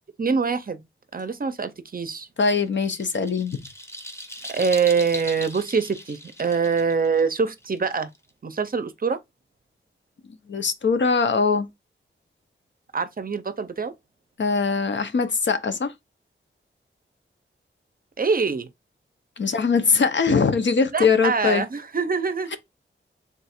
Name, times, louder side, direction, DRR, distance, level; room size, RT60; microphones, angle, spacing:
voice 1, 0.2-0.8 1.1-2.3 4.5-8.1 8.4-9.2 12.9-13.9 18.2-18.7 20.9-22.6, right 5 dB, 45° right, 0.5 m, -24 dB
voice 2, 2.4-3.6 10.5-11.7 14.4-15.9 19.4-21.6, left 5 dB, 60° left, 0.7 m, -21 dB
sound 1, 2.5-8.3, left 1 dB, 15° left, 0.7 m, -39 dB
3.7 x 2.4 x 4.2 m
wide cardioid pair, 100°, 21 cm